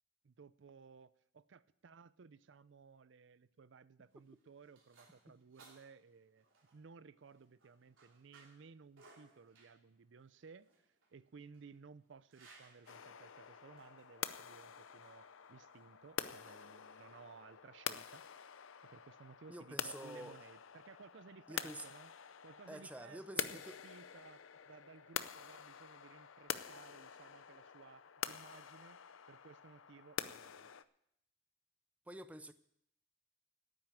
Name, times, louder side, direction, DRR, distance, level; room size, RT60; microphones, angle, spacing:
voice 1, 0.2-6.5 6.7-18.2 18.8-22.1 22.4-29.0 29.3-30.7, right 5 dB, 65° right, 17 dB, 0.5 m, -58 dB
sound 1, 4.0-16.3, right 3 dB, 85° right, 3.2 m, -67 dB
sound 2, 12.9-30.8, left 8 dB, 85° left, 0.6 m, -47 dB
voice 2, 19.5-20.4 21.5-21.9 22.7-23.8 32.1-32.5, right 1 dB, 5° right, 12 dB, 0.4 m, -48 dB
9.2 x 9.1 x 9.1 m, 0.73 s
head